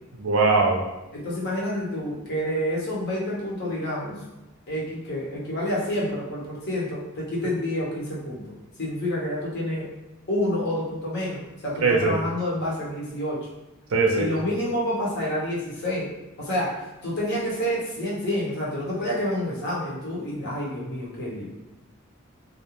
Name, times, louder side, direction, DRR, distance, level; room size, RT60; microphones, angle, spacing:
voice 1, 0.2-0.8 11.8-12.2 13.9-14.3, right 3 dB, 90° right, 1 dB, 0.5 m, -20 dB
voice 2, 1.1-4.2 4.7-9.9 10.3-13.4 14.2-16.1 16.4-16.7 17.0-21.5, left 1 dB, 50° left, -5 dB, 0.8 m, -28 dB
2.4 x 2.1 x 2.9 m, 1.0 s
head